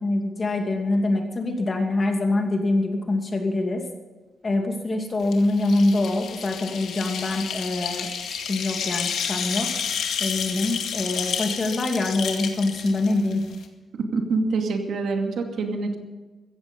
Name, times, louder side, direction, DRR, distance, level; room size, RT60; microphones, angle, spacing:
voice 1, 0.0-3.8 4.4-9.7 10.2-13.4, left 2 dB, 30° left, 3 dB, 2.5 m, -24 dB
sound 1, 5.2-13.7, left 7 dB, 90° left, 2.1 m, -30 dB
voice 2, 14.1-16.0, right 3 dB, 70° right, 3 dB, 2.4 m, -25 dB
15.5 x 15.0 x 5.4 m, 1.3 s
wide cardioid pair, 155°, 0 cm